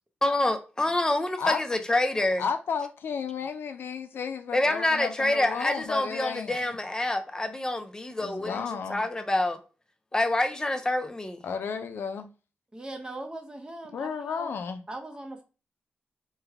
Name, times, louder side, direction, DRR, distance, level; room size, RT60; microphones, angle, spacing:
voice 1, 0.2-2.4 4.5-8.6 8.9-9.6 10.1-11.4, left 1 dB, 20° left, 0.5 m, -27 dB
voice 2, 2.4-6.6 8.2-9.1 11.4-12.3 13.9-14.8, left 6 dB, 85° left, 0.4 m, -33 dB
voice 3, 12.7-14.5 14.9-15.4, right 2 dB, 25° right, 0.6 m, -39 dB
3.2 x 2.1 x 3.4 m
wide cardioid pair, 105°, 4 cm